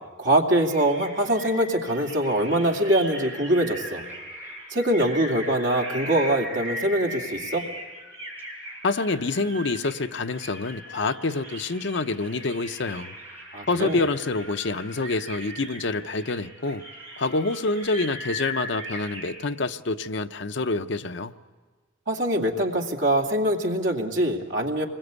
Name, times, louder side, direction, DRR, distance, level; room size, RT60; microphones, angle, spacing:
voice 1, 0.2-4.0 4.7-7.6 13.5-14.0 22.1-24.9, right 1 dB, 65° right, 2 dB, 2.5 m, -23 dB
sound 1, 0.6-19.3, right 1 dB, 10° right, 7.8 m, -39 dB
voice 2, 8.8-13.1 13.7-16.8 17.2-21.3, left 3 dB, 60° left, 9 dB, 0.7 m, -27 dB
27.5 x 21.5 x 8.2 m, 1.4 s
head